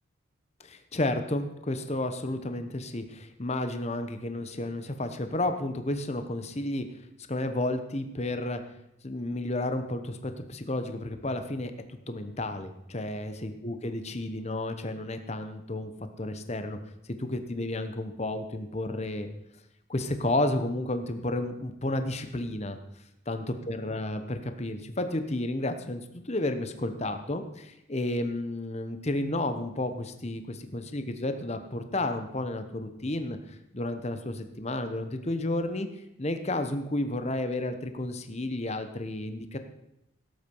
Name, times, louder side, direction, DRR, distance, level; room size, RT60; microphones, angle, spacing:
voice 1, 0.6-6.9 7.3-8.6 9.0-15.9 16.2-16.8 17.2-19.3 19.9-22.8 23.3-35.9 36.2-39.6, left 1 dB, 30° left, 8 dB, 1.0 m, -32 dB
17.0 x 8.5 x 5.4 m, 0.85 s
head